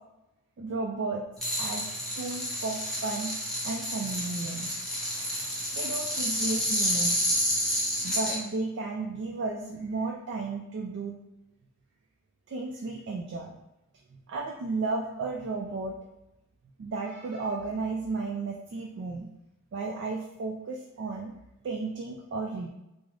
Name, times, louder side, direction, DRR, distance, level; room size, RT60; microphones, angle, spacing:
voice 1, 0.6-1.3 1.6-3.3 3.6-4.9 5.7-7.3 8.0-11.2 12.5-13.5 14.1-15.9 16.8-19.3 19.7-21.3 21.6-22.7, right 3 dB, 55° right, 0 dB, 0.3 m, -33 dB
sound 1, 1.4-8.4, equal, ahead, 0.7 m, -30 dB
3.7 x 2.0 x 3.0 m, 0.91 s
head